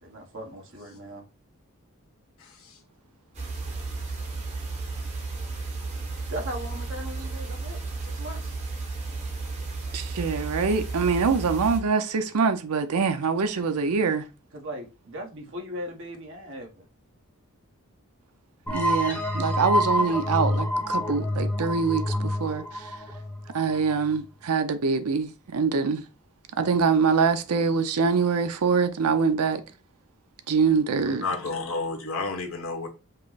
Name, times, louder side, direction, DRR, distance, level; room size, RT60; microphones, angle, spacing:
voice 1, 0.0-1.3 6.3-8.6 14.5-16.9, equal, 55° right, 1.1 m, -38 dB
voice 2, 2.4-2.8 31.1-32.9, left 3 dB, 65° left, 1.0 m, -31 dB
sound 1, 3.3-11.8, right 3 dB, 30° right, 1.0 m, -33 dB
voice 3, 9.9-14.3 18.7-23.0 23.5-26.0 26.6-29.6 30.5-31.2, right 5 dB, 85° right, 0.5 m, -24 dB
sound 2, 18.7-24.1, left 1 dB, 5° left, 0.8 m, -27 dB
5.3 x 2.0 x 3.9 m
head